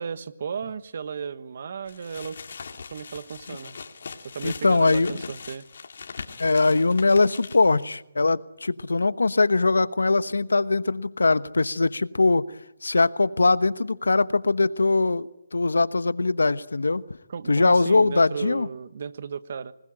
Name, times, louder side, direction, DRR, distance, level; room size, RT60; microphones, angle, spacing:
voice 1, 0.0-2.4 2.9-3.7 4.2-5.7 17.3-19.7, right 6 dB, 50° right, 13 dB, 1.3 m, -35 dB
sound 1, 1.9-7.8, left 5 dB, 60° left, 2.5 m, -41 dB
voice 2, 4.4-5.3 6.4-12.4 12.8-17.0 17.5-18.7, left 3 dB, 90° left, 15 dB, 1.1 m, -21 dB
26.0 x 20.0 x 8.9 m, 0.84 s
hypercardioid pair, 160°, 0 cm